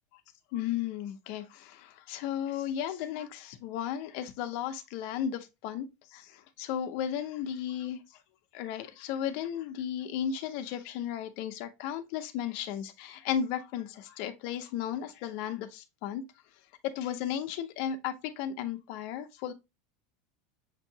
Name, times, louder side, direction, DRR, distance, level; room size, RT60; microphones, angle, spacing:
voice 1, 0.5-8.2 8.5-16.2 16.9-19.5, left 9 dB, 45° left, 0.6 m, -35 dB
6.8 x 2.7 x 2.7 m
supercardioid pair, 170°, 4 cm